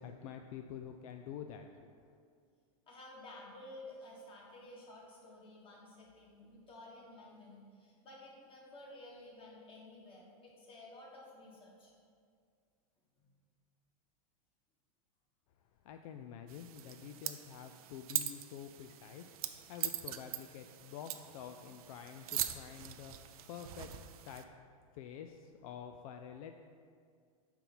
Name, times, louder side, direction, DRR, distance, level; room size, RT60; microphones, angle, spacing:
voice 1, 0.0-1.9 15.8-23.2 23.5-23.9 24.2-24.4 24.9-26.5, left 8 dB, 70° left, 6 dB, 0.4 m, -48 dB
voice 2, 2.9-11.9 13.2-13.3, left 1 dB, 30° left, -3 dB, 1.6 m, -53 dB
sound 1, 16.5-24.4, right 12 dB, 80° right, 0.5 m, -42 dB
5.5 x 4.4 x 5.7 m, 2.1 s
supercardioid pair, 125°, 19 cm